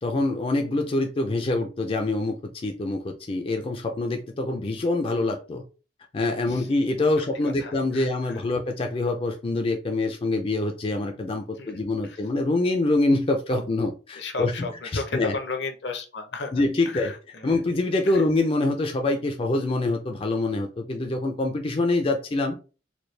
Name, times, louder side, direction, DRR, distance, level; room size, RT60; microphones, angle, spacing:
voice 1, 0.0-5.6 6.1-15.4 16.5-17.1 17.4-22.6, left 2 dB, 30° left, 4 dB, 0.4 m, -25 dB
voice 2, 7.4-8.4 11.6-12.2 14.1-17.6, left 3 dB, 65° left, 6 dB, 0.7 m, -35 dB
4.4 x 2.2 x 3.2 m, 0.34 s
head